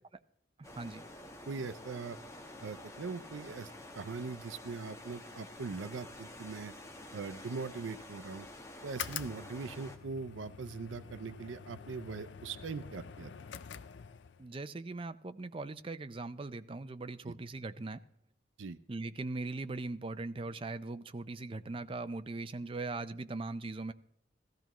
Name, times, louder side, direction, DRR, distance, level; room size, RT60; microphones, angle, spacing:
sound 1, 0.6-10.0, left 1 dB, 15° left, 1.1 m, -49 dB
voice 1, 1.5-2.2 2.6-3.7 3.9-6.7 7.1-8.5 8.8-13.3 17.2-17.3 18.6-18.8, right 4 dB, 80° right, 14 dB, 0.5 m, -41 dB
sound 2, 8.8-14.5, left 8 dB, 65° left, 0.5 m, -46 dB
voice 2, 14.4-18.0 18.9-23.9, right 3 dB, 30° right, 11 dB, 0.4 m, -40 dB
16.5 x 13.5 x 3.0 m, 0.73 s
head